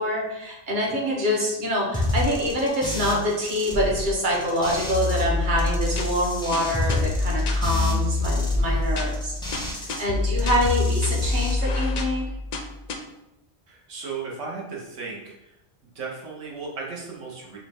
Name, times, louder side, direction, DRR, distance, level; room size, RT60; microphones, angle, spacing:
voice 1, 0.0-9.7 10.0-12.3, equal, 45° right, -2 dB, 1.0 m, -26 dB
sound 1, 1.9-5.2 5.5-10.0 10.3-11.5, left 1 dB, 5° left, 0.5 m, -30 dB
sound 2, 4.9-12.9, left 3 dB, 60° left, 0.5 m, -26 dB
voice 2, 13.7-15.6 15.9-17.6, right 4 dB, 80° right, -3 dB, 1.3 m, -35 dB
4.5 x 2.4 x 3.4 m, 0.92 s
omnidirectional pair, 1.2 m